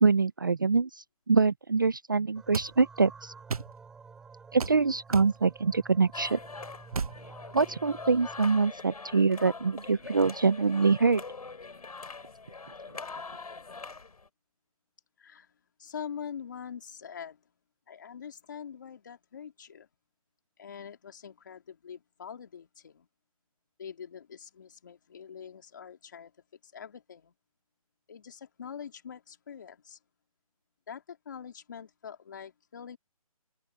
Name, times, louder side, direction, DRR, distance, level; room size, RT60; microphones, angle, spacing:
voice 1, 0.0-3.3 4.5-6.4 7.5-11.2, right 4 dB, 35° right, 0.5 m, -25 dB
sound 1, 2.3-8.5, right 5 dB, 5° right, 2.8 m, -51 dB
sound 2, 2.5-2.7 3.5-3.7 4.6-4.8 5.1-5.3 6.9-7.2, right 5 dB, 75° right, 1.1 m, -32 dB
sound 3, 6.1-14.3, left 4 dB, 85° left, 7.2 m, -43 dB
voice 2, 15.2-15.5 15.8-17.4 17.9-19.9 20.6-23.1 23.8-26.3 26.6-27.3 28.1-30.0 30.9-33.0, left 7 dB, 30° left, 3.5 m, -44 dB
hypercardioid pair, 180°, 19 cm